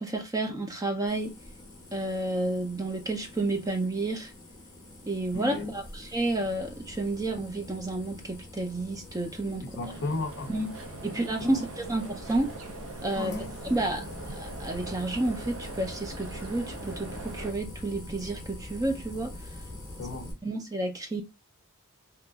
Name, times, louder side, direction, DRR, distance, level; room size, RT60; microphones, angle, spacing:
voice 1, 0.0-1.3 1.9-4.3 5.1-9.7 10.5-10.7 11.0-12.5 13.0-13.4 13.7-19.3 20.4-21.2, right 2 dB, 15° right, 0.5 m, -30 dB
sound 1, 1.1-20.3, left 1 dB, 15° left, 0.8 m, -44 dB
voice 2, 5.3-5.7 9.6-10.6 11.0-11.7 13.1-13.5 19.7-20.4, left 2 dB, 55° left, 0.6 m, -35 dB
sound 2, 9.8-17.5, right 3 dB, 65° right, 0.6 m, -42 dB
2.9 x 2.4 x 2.3 m
head